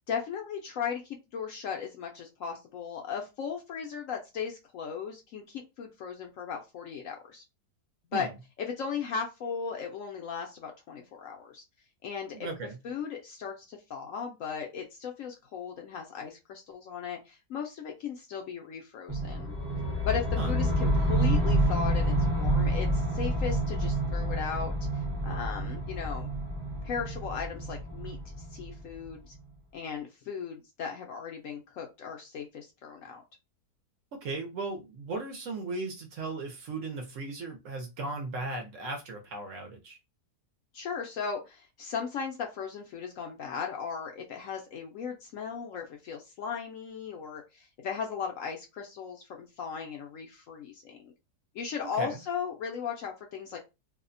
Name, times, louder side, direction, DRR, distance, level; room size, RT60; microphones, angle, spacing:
voice 1, 0.0-7.4 8.1-8.3 8.6-11.6 12.0-12.5 12.8-19.5 20.0-24.7 25.2-26.3 26.8-28.2 28.5-29.3 29.7-33.2 40.7-51.1 51.5-53.6, left 6 dB, 70° left, 0.8 m, -37 dB
voice 2, 12.3-12.8 20.4-20.5 34.1-40.0 52.0-52.2, right 3 dB, 65° right, 0.9 m, -36 dB
sound 1, 19.1-29.2, right 1 dB, 30° right, 0.4 m, -28 dB
2.7 x 2.1 x 2.4 m
omnidirectional pair, 1.7 m